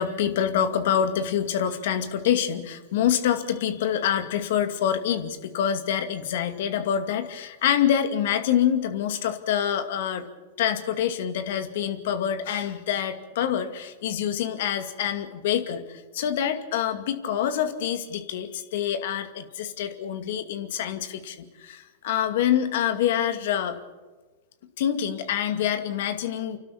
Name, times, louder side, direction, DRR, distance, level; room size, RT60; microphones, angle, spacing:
voice 1, 0.0-10.3 10.6-23.8 24.8-26.6, left 9 dB, 65° left, 8 dB, 2.3 m, -26 dB
30.0 x 12.5 x 8.6 m, 1.2 s
hypercardioid pair, 115°, 0 cm